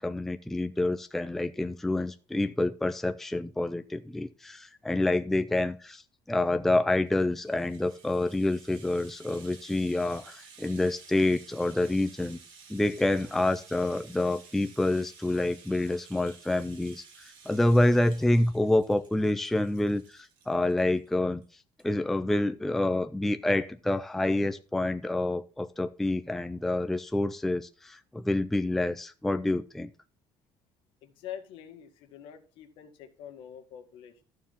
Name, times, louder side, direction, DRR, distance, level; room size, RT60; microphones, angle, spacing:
voice 1, 0.0-6.0 6.3-12.4 12.7-21.4 21.8-29.9, left 1 dB, 5° left, 9 dB, 0.4 m, -27 dB
Rattle (instrument), 6.9-21.1 21.4-21.5 21.8-21.9, right 6 dB, 65° right, 2.8 m, -54 dB
voice 2, 31.0-34.2, left 9 dB, 70° left, 6 dB, 1.8 m, -45 dB
13.5 x 4.7 x 5.5 m, 0.37 s
cardioid pair, 175°, 9 cm